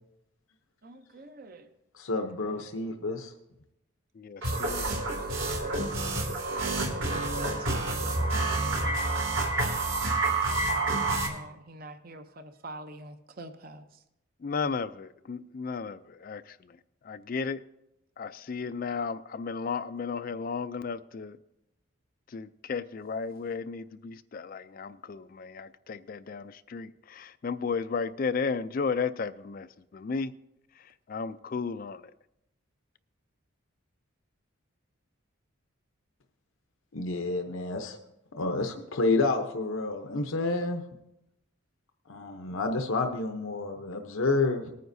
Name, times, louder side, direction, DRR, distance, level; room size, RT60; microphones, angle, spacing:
voice 1, 0.8-1.7 4.9-6.3 6.8-7.9 10.1-13.8, right 1 dB, 45° right, 0.7 m, -47 dB
voice 2, 1.9-3.3 36.9-38.0 38.3-40.8 42.1-44.7, left 3 dB, 75° left, 0.8 m, -29 dB
voice 3, 4.2-4.9 14.4-16.7 17.0-17.6 18.2-21.4 22.3-29.7 29.9-30.3 31.1-32.1, left 5 dB, 40° left, 0.3 m, -34 dB
sound 1, 4.4-11.3, right 2 dB, 65° right, 2.2 m, -28 dB
19.5 x 9.3 x 2.7 m
head